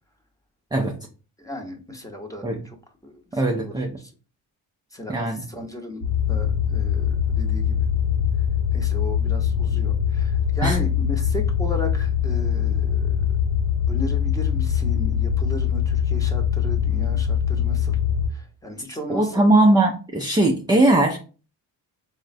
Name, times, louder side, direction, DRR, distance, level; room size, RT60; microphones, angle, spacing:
voice 1, 1.4-2.8 3.0-4.1 4.9-6.0 6.3-7.9 8.4-8.5 8.7-13.4 13.9-18.0 18.3-19.5, left 1 dB, 10° left, 3 dB, 0.7 m, -35 dB
voice 2, 3.3-4.0 5.1-5.4 10.6-10.8 19.1-21.2, right 2 dB, 10° right, 1 dB, 0.3 m, -19 dB
sound 1, 6.0-18.3, left 8 dB, 65° left, 0.9 m, -22 dB
3.7 x 2.1 x 2.5 m, 0.36 s
supercardioid pair, 65°, 45 cm